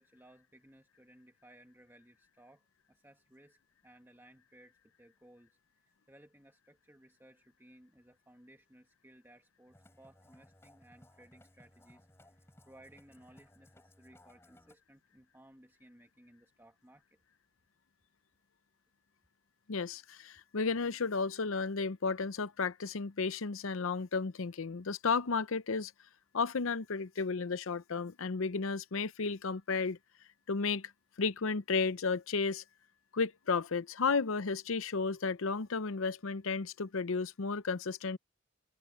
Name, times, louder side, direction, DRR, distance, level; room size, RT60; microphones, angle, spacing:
voice 1, 0.0-17.2, right 1 dB, 10° right, 1.8 m, -60 dB
Musical instrument, 9.7-14.8, left 1 dB, 10° left, 7.0 m, -62 dB
voice 2, 19.7-25.9 26.3-30.0 30.5-30.9 31.2-32.6 33.1-38.2, left 4 dB, 70° left, 0.7 m, -33 dB
head